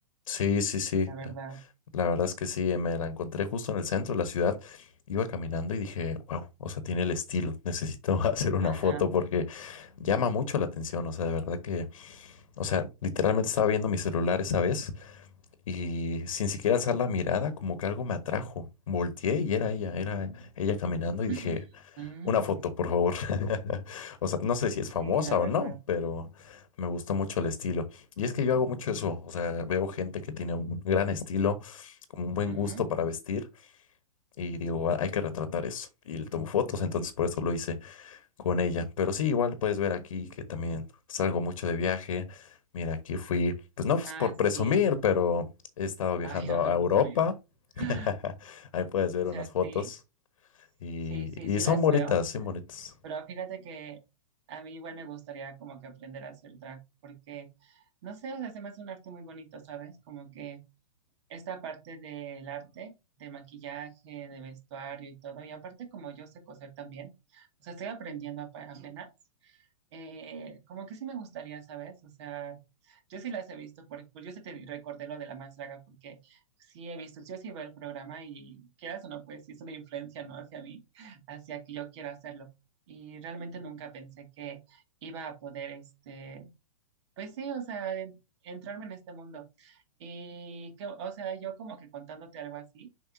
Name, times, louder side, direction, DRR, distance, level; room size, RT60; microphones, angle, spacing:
voice 1, 0.3-1.1 1.9-15.3 15.7-21.6 22.2-33.7 34.4-45.5 45.8-47.3 47.8-48.0 48.4-50.0 50.8-52.9, left 6 dB, 65° left, 1.2 m, -29 dB
voice 2, 1.1-1.6 8.6-9.1 21.3-21.7 22.0-22.6 25.0-25.8 32.5-32.8 44.0-44.9 46.2-47.3 47.8-48.1 49.3-49.9 51.1-52.1 53.0-54.0 54.5-60.6 61.3-69.1 69.4-69.6 69.9-72.6 72.8-82.5 82.9-86.5 87.2-93.1, right 7 dB, 50° right, 2.2 m, -41 dB
7.1 x 5.4 x 2.7 m
figure-of-eight pair, 115°, 19 cm